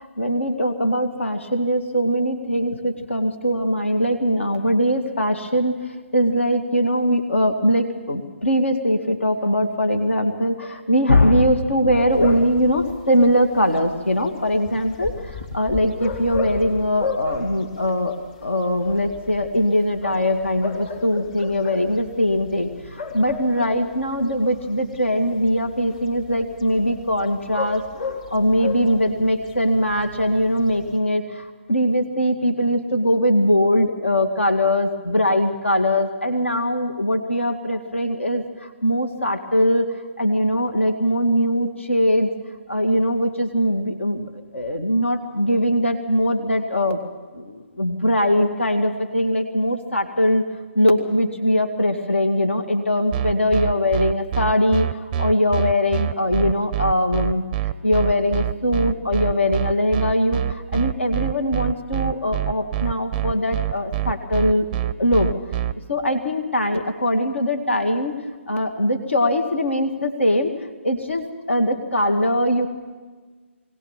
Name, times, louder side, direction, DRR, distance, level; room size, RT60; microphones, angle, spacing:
voice 1, 0.0-5.8 6.1-39.9 40.2-42.3 42.7-47.0 47.3-50.4 50.8-57.4 57.8-64.7 65.0-65.3 65.9-68.2 68.5-72.7, equal, 70° left, 6 dB, 2.1 m, -21 dB
sound 1, 12.1-31.0, left 4 dB, 35° left, 3.5 m, -36 dB
sound 2, 53.1-65.7, right 11 dB, 15° right, 0.6 m, -25 dB
21.0 x 19.0 x 7.3 m, 1.4 s
figure-of-eight pair, 145°, 7 cm